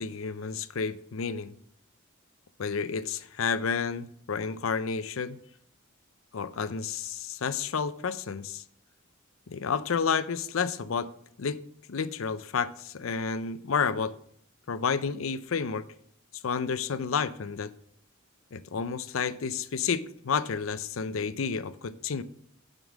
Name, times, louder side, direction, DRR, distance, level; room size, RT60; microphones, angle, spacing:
voice 1, 0.0-1.5 2.6-5.4 6.3-8.6 9.5-11.1 11.4-11.6 11.9-14.1 14.7-15.8 16.4-17.7 18.5-22.2, left 6 dB, 75° left, 0.6 m, -30 dB
7.3 x 5.3 x 7.1 m
head